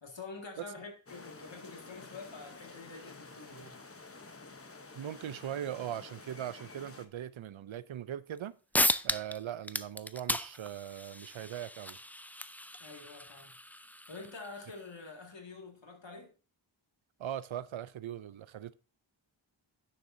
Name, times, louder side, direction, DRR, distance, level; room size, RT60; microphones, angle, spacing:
voice 1, 0.0-3.8 12.8-13.6 14.1-16.3, left 3 dB, 65° left, 2.1 m, -47 dB
sound 1, 1.1-7.1, left 3 dB, 30° left, 0.9 m, -50 dB
voice 2, 5.0-8.6 9.0-12.0 17.2-18.7, right 10 dB, 75° right, 0.6 m, -40 dB
sound 2, 8.4-8.5 8.7-9.4 9.6-14.8, left 1 dB, 5° left, 0.3 m, -35 dB
9.5 x 6.7 x 2.7 m
wide cardioid pair, 55°, 47 cm